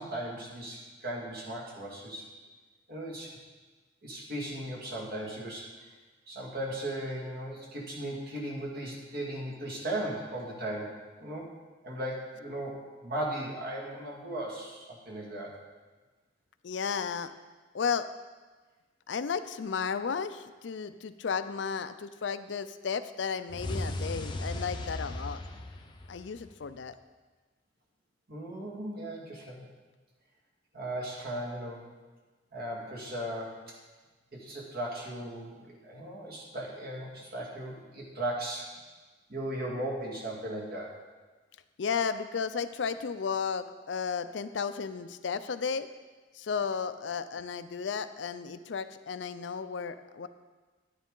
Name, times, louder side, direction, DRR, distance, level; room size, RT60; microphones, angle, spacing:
voice 1, 0.0-2.3 2.9-3.3 4.0-5.7 6.3-11.5 11.8-15.5 28.3-29.7 30.7-31.8 32.5-33.7 34.3-38.7 39.3-40.9, right 1 dB, 55° right, -2 dB, 2.0 m, -37 dB
voice 2, 16.6-17.3 17.7-18.1 19.1-25.4 26.1-26.9 41.8-45.9 46.3-50.3, left 6 dB, 75° left, 12 dB, 0.5 m, -33 dB
sound 1, 23.5-26.7, left 1 dB, 25° left, 0.7 m, -36 dB
10.0 x 9.7 x 3.8 m, 1.3 s
head